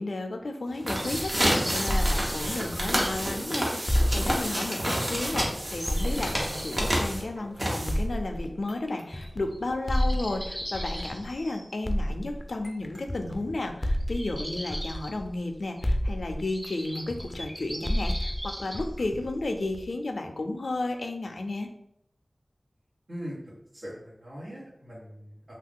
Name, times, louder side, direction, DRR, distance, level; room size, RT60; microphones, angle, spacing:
voice 1, 0.0-21.7, left 2 dB, 90° left, 5 dB, 0.4 m, -33 dB
sound 1, 0.7-8.2, equal, 50° right, 0.8 m, -29 dB
sound 2, 0.9-3.2 3.7-3.8 4.6-4.7 5.8-6.8 9.1-9.3 9.5-9.6 9.9-11.7 14.0-15.1 15.8-15.9 16.5-18.8, equal, 15° right, 0.7 m, -39 dB
sound 3, 1.0-3.4 3.9-7.4 7.9-11.4 11.8-15.5 15.8-19.9, equal, 20° left, 0.4 m, -31 dB
voice 2, 23.7-25.5, equal, 85° right, -7 dB, 1.4 m, -41 dB
2.7 x 2.3 x 3.6 m, 0.76 s
wide cardioid pair, 65°, 0 cm